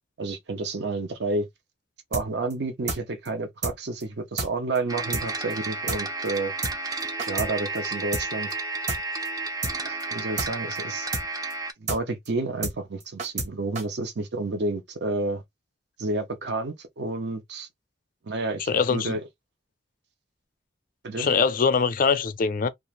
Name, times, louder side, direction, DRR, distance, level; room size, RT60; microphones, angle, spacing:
voice 1, 0.2-1.5 2.1-6.5 7.3-8.5 9.8-11.1 11.8-15.4 16.0-17.7 18.2-19.2 21.0-21.3, right 2 dB, 65° right, 0.6 m, -30 dB
sound 1, 2.1-2.2 2.5-2.6 2.9-3.0 3.2-3.3 3.6-3.7 4.0-4.1 4.4-4.5 4.7-4.8 5.1-5.2 5.5-5.6 5.9-6.0 6.2-6.3 6.6-6.7 7.0-7.5 7.7-7.8 8.1-8.2 8.5-8.6 8.9-9.0 9.2-9.3 9.6-9.7 10.0-10.1 10.4-10.5 10.7-10.8 11.1-11.2 11.5-11.6 11.9-12.0 12.2-12.3 12.6-12.7 13.0-13.5 13.7-13.8, right 3 dB, 40° right, 0.9 m, -29 dB
sound 2, 4.9-11.7, right 3 dB, 20° right, 0.4 m, -32 dB
voice 2, 18.7-19.1 21.2-22.7, left 5 dB, 50° left, 0.4 m, -23 dB
2.4 x 2.4 x 3.1 m
head